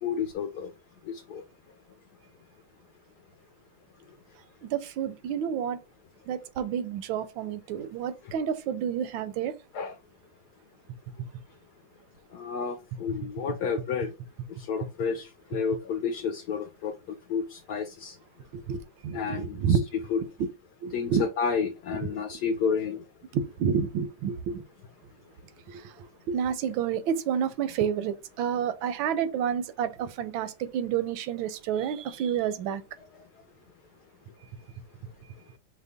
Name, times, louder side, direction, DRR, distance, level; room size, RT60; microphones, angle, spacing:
voice 1, 0.0-0.7 1.1-1.4 9.7-9.9 12.3-14.1 14.7-15.3 15.5-16.9 17.3-18.1 19.1-19.8 20.1-20.2 20.9-23.0, left 6 dB, 70° left, 1.0 m, -30 dB
voice 2, 4.6-5.8 6.3-9.5 18.5-19.9 20.8-21.2 21.9-22.0 23.3-24.6 25.7-25.9 26.3-32.8, right 8 dB, 80° right, 1.4 m, -29 dB
5.4 x 2.1 x 3.6 m
omnidirectional pair, 2.2 m